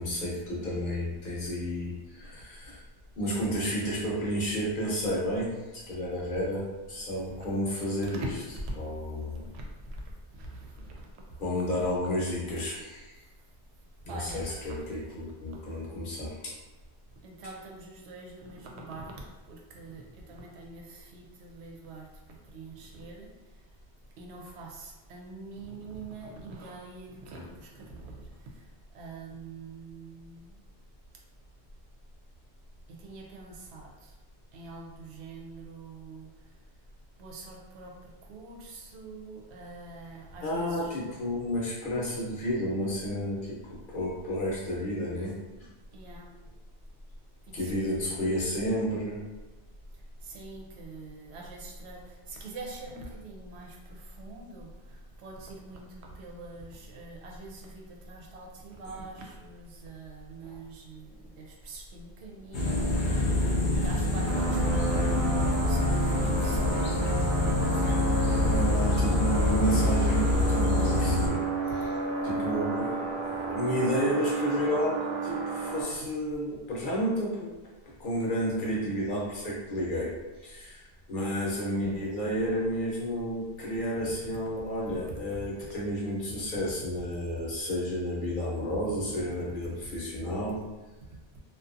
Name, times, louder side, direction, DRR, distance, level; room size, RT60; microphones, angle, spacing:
voice 1, 0.0-2.8 3.2-5.5 5.7-8.3 8.7-9.4 11.4-13.1 14.1-16.5 40.4-43.4 43.7-45.7 47.5-49.2 60.4-60.5 68.5-72.0 72.2-74.9 75.2-77.5 78.0-80.1 80.4-90.6, equal, 55° left, -5 dB, 0.8 m, -31 dB
voice 2, 9.5-10.0 10.3-11.2 14.1-14.8 15.5-15.6 17.2-22.1 22.5-23.3 24.2-28.3 28.9-30.5 32.9-34.1 34.5-36.3 37.2-40.9 45.9-46.3 47.5-48.2 50.2-67.1 67.7-68.2, right 2 dB, 85° right, 0 dB, 0.9 m, -44 dB
sound 1, 62.5-71.3, left 1 dB, 85° left, 0.9 m, -26 dB
sound 2, 64.2-75.8, right 2 dB, 55° right, 0.6 m, -32 dB
2.6 x 2.3 x 2.4 m, 1.2 s
omnidirectional pair, 1.1 m